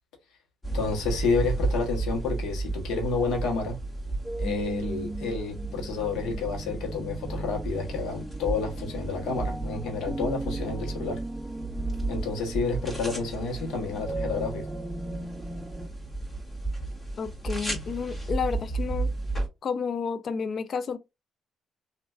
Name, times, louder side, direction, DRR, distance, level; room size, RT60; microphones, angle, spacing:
sound 1, 0.6-19.5, right 2 dB, 20° left, 1.7 m, -34 dB
voice 1, 0.7-3.8 4.4-11.2 12.1-14.7, left 4 dB, 85° left, 1.1 m, -30 dB
sound 2, 4.2-15.9, right 2 dB, 10° right, 0.4 m, -38 dB
voice 2, 17.2-19.1 19.6-21.0, left 6 dB, 55° left, 0.4 m, -31 dB
3.2 x 2.5 x 2.4 m
cardioid pair, 90°, 0 cm